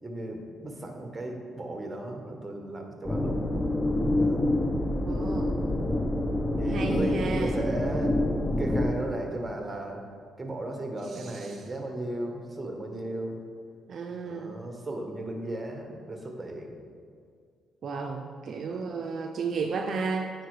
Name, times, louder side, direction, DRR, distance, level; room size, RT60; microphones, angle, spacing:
voice 1, 0.0-3.4 4.2-4.4 6.6-8.2 8.6-10.0 10.4-13.4 14.2-16.7 18.7-18.8, right 1 dB, 15° right, 2 dB, 1.0 m, -36 dB
sound 1, 3.0-8.9, left 1 dB, 15° left, 0.5 m, -27 dB
voice 2, 5.0-5.6 6.6-7.6 11.5-11.6 13.9-14.6 17.8-20.3, right 4 dB, 55° right, 3 dB, 0.4 m, -33 dB
9.1 x 4.3 x 3.2 m, 2.2 s
cardioid pair, 90°, 0 cm